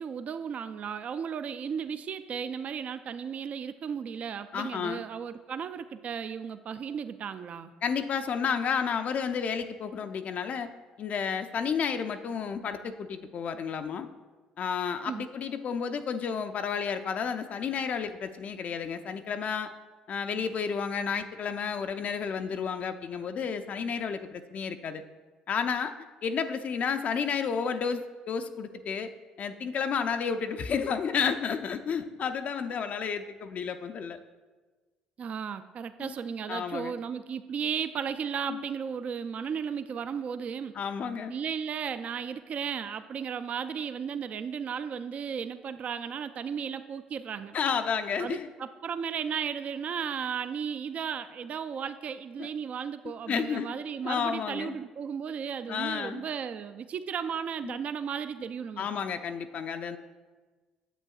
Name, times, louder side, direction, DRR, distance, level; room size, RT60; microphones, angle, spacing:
voice 1, 0.0-7.7 15.1-15.3 35.2-40.7 41.3-47.6 48.2-58.9, right 7 dB, 45° right, 11 dB, 0.3 m, -35 dB
voice 2, 4.5-5.0 7.8-10.7 11.0-14.1 14.6-19.7 20.1-25.0 25.5-25.9 26.2-29.1 29.4-34.2 36.0-36.1 36.5-36.9 38.5-38.6 40.7-41.4 47.5-48.5 52.4-52.5 53.3-53.7 54.0-54.7 55.7-56.2 57.6-57.8 58.8-60.0, left 6 dB, 50° left, 7 dB, 0.4 m, -31 dB
9.0 x 7.4 x 2.3 m, 1.3 s
hypercardioid pair, 55°, 3 cm